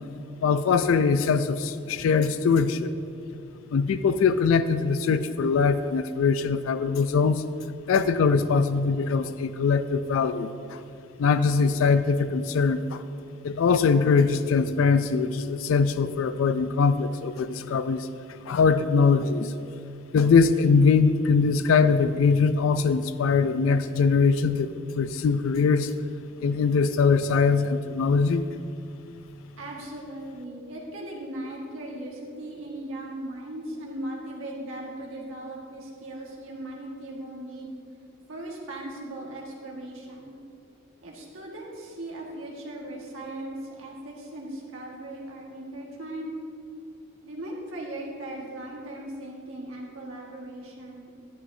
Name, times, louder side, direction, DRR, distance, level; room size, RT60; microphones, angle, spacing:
voice 1, 0.4-2.9 3.7-7.4 7.9-10.8 11.2-13.0 13.4-18.1 18.5-19.5 20.1-25.9 26.4-28.5, left 5 dB, 75° left, 12 dB, 0.3 m, -22 dB
voice 2, 29.6-37.7 38.3-40.4 41.0-46.3 47.2-51.1, right 1 dB, 75° right, -3 dB, 1.6 m, -38 dB
11.0 x 11.0 x 2.7 m, 2.5 s
head